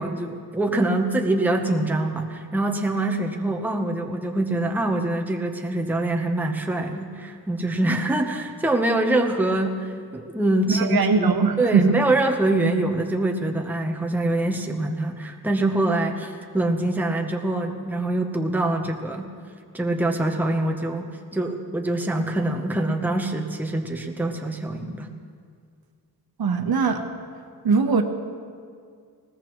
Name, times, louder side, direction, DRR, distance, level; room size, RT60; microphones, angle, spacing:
voice 1, 0.0-11.3 11.6-19.3 19.7-21.1 21.3-25.1, right 2 dB, 5° right, 2 dB, 0.8 m, -24 dB
voice 2, 10.8-12.0 26.4-27.0 27.6-28.0, right 5 dB, 65° right, 5 dB, 1.1 m, -21 dB
21.0 x 18.5 x 3.1 m, 2.1 s
wide cardioid pair, 160°, 40 cm